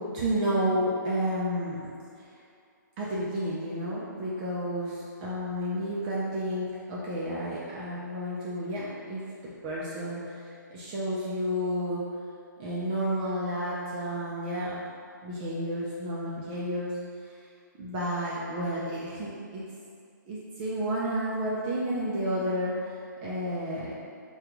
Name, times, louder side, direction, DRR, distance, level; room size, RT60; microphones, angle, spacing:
voice 1, 0.0-2.3 3.0-9.2 9.6-12.1 12.6-14.8 15.2-17.3 17.8-19.6 20.3-23.9, equal, 25° right, -7 dB, 0.4 m, -31 dB
3.6 x 2.2 x 2.9 m, 2.3 s
hypercardioid pair, 155°, 11 cm